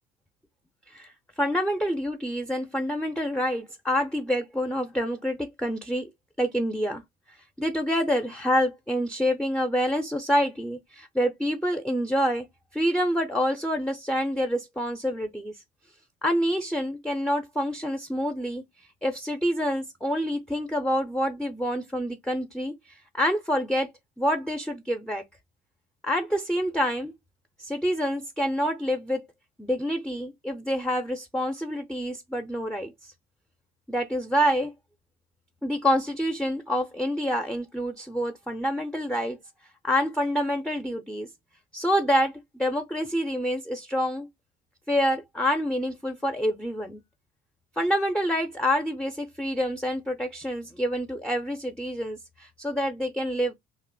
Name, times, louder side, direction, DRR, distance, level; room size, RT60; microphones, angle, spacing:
voice 1, 0.9-6.1 6.4-7.0 7.3-12.5 12.7-15.6 16.2-18.6 19.0-23.9 24.2-25.2 26.0-27.1 27.6-29.2 29.6-33.1 33.9-34.7 35.6-39.4 39.8-41.3 41.7-44.3 44.9-47.0 47.8-53.5, equal, ahead, 0.4 m, -27 dB
2.5 x 2.1 x 3.8 m
hypercardioid pair, 55°, 32 cm